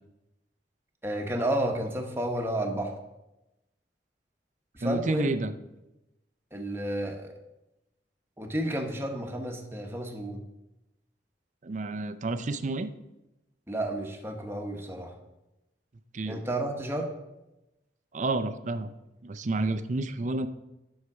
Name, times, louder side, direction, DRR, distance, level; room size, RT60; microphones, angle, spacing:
voice 1, 1.0-3.0 4.7-5.3 6.5-7.3 8.4-10.4 13.7-15.1 16.3-17.1, right 1 dB, 15° right, 2 dB, 1.1 m, -31 dB
voice 2, 4.8-5.5 11.6-12.9 16.1-16.4 18.1-18.9 19.2-20.5, right 2 dB, 45° right, 10 dB, 0.5 m, -30 dB
9.6 x 6.4 x 4.9 m, 0.95 s
head